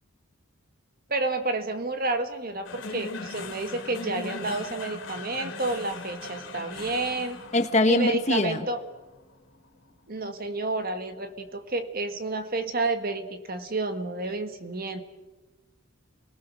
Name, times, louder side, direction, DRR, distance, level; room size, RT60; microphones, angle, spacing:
voice 1, 1.1-7.4 7.9-8.8 10.1-15.0, right 2 dB, 45° right, 8 dB, 1.7 m, -30 dB
sound 1, 2.6-11.1, left 3 dB, 65° left, 2.9 m, -40 dB
voice 2, 7.5-8.7, left 2 dB, 35° left, 8 dB, 1.3 m, -22 dB
29.5 x 20.0 x 6.4 m, 1.1 s
head